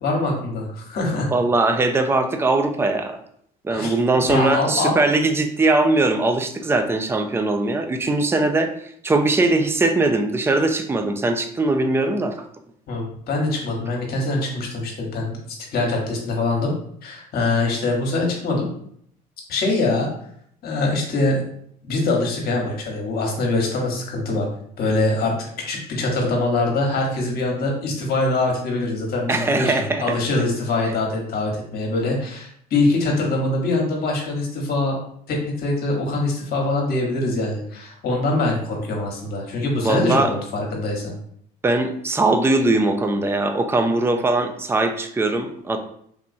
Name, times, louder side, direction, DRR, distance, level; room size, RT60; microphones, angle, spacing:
voice 1, 0.0-1.3 3.7-4.0 4.3-5.0 12.9-15.4 15.7-16.7 17.0-18.7 19.5-20.1 20.6-21.5 21.8-24.5 24.8-25.4 25.7-35.0 35.3-41.1, left 2 dB, 60° left, 0 dB, 1.1 m, -23 dB
voice 2, 1.3-3.2 3.6-8.7 9.0-12.5 29.3-30.2 39.8-40.3 41.6-45.8, right 2 dB, 15° right, 7 dB, 0.4 m, -20 dB
3.4 x 2.9 x 2.6 m, 0.66 s
supercardioid pair, 85°, 18 cm